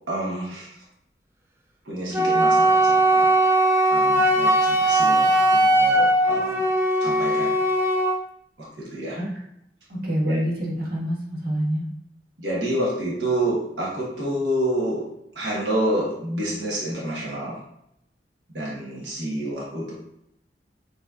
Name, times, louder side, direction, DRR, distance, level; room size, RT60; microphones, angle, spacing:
voice 1, 0.1-0.7 1.8-3.3 3.9-6.6 7.0-7.5 8.6-9.2 10.2-10.4 12.4-15.1 15.3-17.6 18.5-19.9, right 1 dB, 85° right, -6 dB, 1.3 m, -28 dB
Wind instrument woodwind instrument, 2.1-8.2, right 1 dB, 15° right, 0.6 m, -19 dB
voice 2, 9.9-11.8, equal, 60° right, -6 dB, 1.6 m, -26 dB
6.7 x 3.2 x 2.4 m, 0.77 s
head